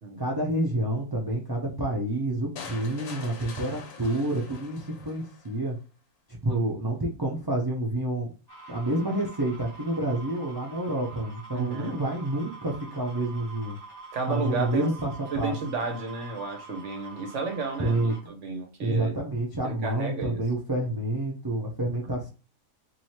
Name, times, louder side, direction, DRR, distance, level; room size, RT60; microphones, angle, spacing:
voice 1, 0.2-5.8 6.4-8.3 8.7-13.8 14.3-15.5 17.8-18.1 18.8-22.3, right 1 dB, 25° right, -2 dB, 0.5 m, -28 dB
sound 1, 2.6-5.6, left 5 dB, 65° left, 1.1 m, -43 dB
sound 2, 8.5-18.2, right 4 dB, 20° left, 1.1 m, -45 dB
voice 2, 11.5-12.0 14.1-14.9 15.3-19.1 19.6-20.4 22.0-22.1, right 4 dB, 60° right, 3 dB, 1.1 m, -32 dB
3.1 x 2.8 x 4.2 m, 0.32 s
omnidirectional pair, 1.5 m